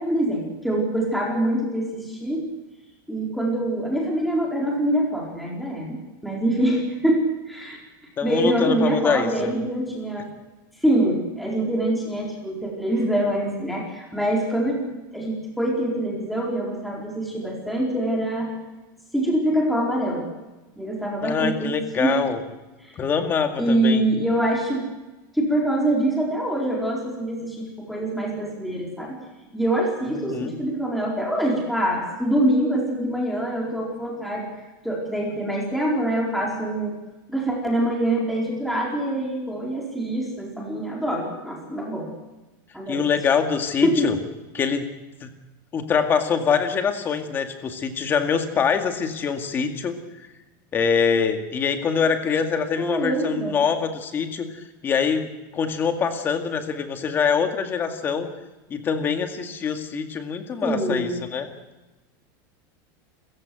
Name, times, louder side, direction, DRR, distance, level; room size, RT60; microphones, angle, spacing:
voice 1, 0.0-2.4 3.1-6.0 6.2-7.8 8.2-10.3 10.8-14.8 15.1-18.5 19.1-20.3 20.8-22.2 22.8-22.9 23.6-24.9 25.3-29.2 29.5-34.5 34.8-36.9 37.3-42.1 42.7-43.0 43.8-44.1 52.8-53.6 60.6-61.1, right 1 dB, ahead, -3 dB, 4.4 m, -24 dB
voice 2, 8.2-9.5 21.2-22.4 23.0-24.0 30.1-30.6 42.9-44.2 44.5-44.9 45.2-45.3 45.7-50.0 50.7-58.3 58.7-61.5, left 6 dB, 20° left, 7 dB, 2.1 m, -24 dB
28.5 x 15.5 x 7.8 m, 1.1 s
supercardioid pair, 175°, 11 cm